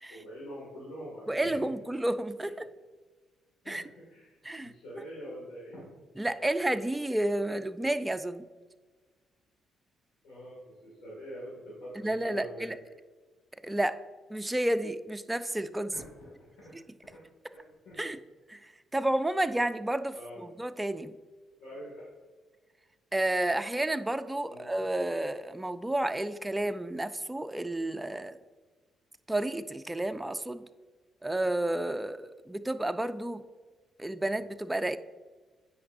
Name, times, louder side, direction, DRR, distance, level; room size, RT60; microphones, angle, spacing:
voice 1, 0.1-1.6 2.4-2.5 3.6-5.9 10.2-12.7 15.9-16.0 17.1-17.2 17.5-18.0 20.1-20.5 21.6-22.1 24.5-24.7 34.2-34.5, equal, 80° left, -6 dB, 2.0 m, -45 dB
voice 2, 1.3-2.7 3.7-3.8 4.4-4.7 6.2-8.5 12.0-12.8 13.6-14.0 14.3-15.9 16.7-16.8 18.0-18.2 18.5-21.1 23.1-28.4 29.3-30.7 31.2-33.4 34.0-35.0, right 1 dB, 10° right, 10 dB, 0.4 m, -31 dB
8.5 x 5.3 x 2.5 m, 1.4 s
cardioid pair, 90°, 0 cm